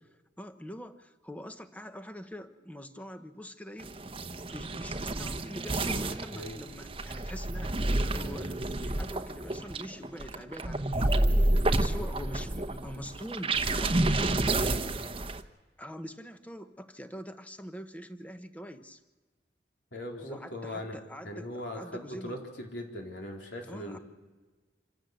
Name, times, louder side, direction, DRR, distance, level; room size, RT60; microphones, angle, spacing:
voice 1, 0.4-3.9 4.5-14.7 15.8-19.0 20.2-22.4 23.7-24.0, equal, 10° left, 8 dB, 1.0 m, -44 dB
sound 1, 3.8-15.4, right 2 dB, 30° right, 0.9 m, -30 dB
voice 2, 19.9-21.0 21.2-24.0, left 1 dB, 80° left, 1 dB, 4.2 m, -40 dB
26.5 x 16.5 x 7.9 m, 1.3 s
head